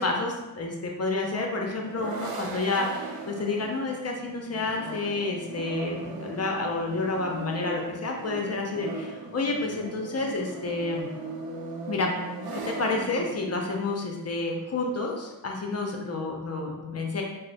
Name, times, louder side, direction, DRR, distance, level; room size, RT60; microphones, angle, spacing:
voice 1, 0.0-11.1 11.9-12.1 12.5-17.2, left 3 dB, 45° left, 1 dB, 0.5 m, -29 dB
sound 1, 1.5-13.5, right 2 dB, 75° right, 0.6 m, -38 dB
3.2 x 2.0 x 3.9 m, 1.1 s
wide cardioid pair, 105°, 37 cm